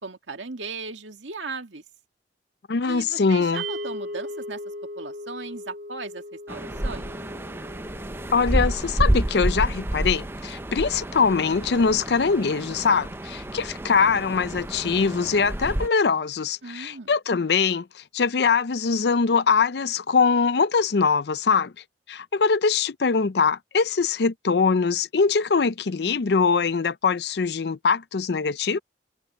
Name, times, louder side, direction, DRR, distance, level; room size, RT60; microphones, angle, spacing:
voice 1, 0.0-1.8 2.8-4.6 5.0-7.2 16.6-17.1, right 4 dB, 85° right, 2.3 m, -37 dB
voice 2, 2.7-3.6 8.3-21.7 22.1-28.8, left 5 dB, 60° left, 0.5 m, -22 dB
sound 1, 3.6-13.9, equal, 50° right, 1.9 m, -40 dB
sound 2, 6.5-15.9, right 1 dB, 10° right, 0.5 m, -29 dB
head